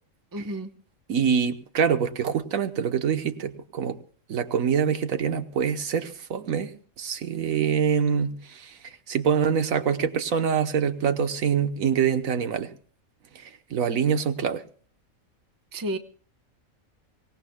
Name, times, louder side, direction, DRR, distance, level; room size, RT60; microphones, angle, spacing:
voice 1, 0.3-0.7 15.7-16.0, right 1 dB, 20° right, 8 dB, 0.8 m, -31 dB
voice 2, 1.1-4.0 4.3-12.7 13.3-14.6, right 7 dB, 85° right, 9 dB, 1.5 m, -25 dB
25.0 x 17.5 x 2.2 m, 0.44 s
omnidirectional pair, 1.4 m